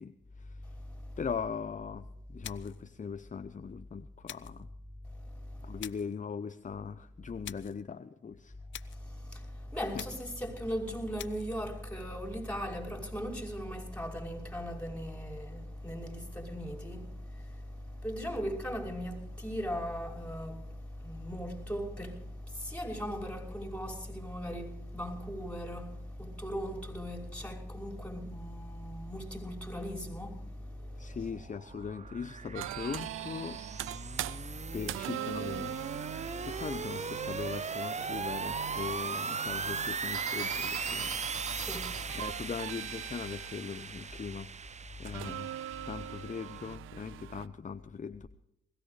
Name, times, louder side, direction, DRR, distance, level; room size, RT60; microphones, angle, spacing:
voice 1, 0.0-0.7 1.2-4.7 5.6-8.6 9.7-10.0 31.0-33.6 34.0-34.3 34.7-36.0 36.4-41.2 42.1-44.5 45.0-45.5 45.9-48.3, left 6 dB, 40° left, 0.8 m, -40 dB
voice 2, 0.8-1.2 5.3-5.8 8.9-31.3 34.2-34.8 36.3-36.5 41.5-42.2 45.1-45.2, equal, 5° left, 5.6 m, -39 dB
sound 1, 2.4-2.9 4.3-4.6 5.8-6.2 7.4-7.8 8.7-9.1 10.0-10.4 11.2-11.5, left 11 dB, 70° left, 0.7 m, -46 dB
sound 2, 30.7-46.7, right 5 dB, 35° right, 0.7 m, -39 dB
sound 3, 32.6-47.5, right 13 dB, 85° right, 0.5 m, -42 dB
20.5 x 16.0 x 3.3 m
supercardioid pair, 50°, 20 cm